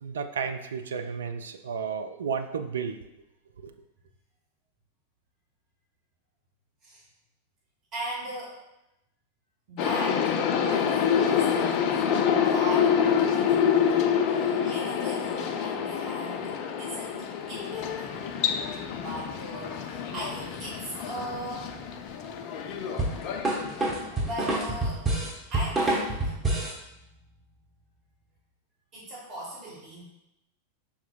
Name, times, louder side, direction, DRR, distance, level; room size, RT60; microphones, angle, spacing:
voice 1, 0.0-3.0 3.6-3.7, right 6 dB, 65° right, 8 dB, 0.3 m, -32 dB
voice 2, 7.9-8.6 9.7-10.3 10.6-11.9 12.1-13.7 14.3-18.3 18.9-21.7 24.2-25.0 25.5-26.3 28.9-30.0, right 1 dB, 35° right, -5 dB, 1.5 m, -39 dB
sound 1, 9.8-24.3, left 7 dB, 40° left, 0.4 m, -27 dB
sound 2, 23.0-26.8, right 2 dB, 15° right, 1.1 m, -27 dB
5.9 x 3.6 x 2.3 m, 0.90 s
figure-of-eight pair, 90°, 0 cm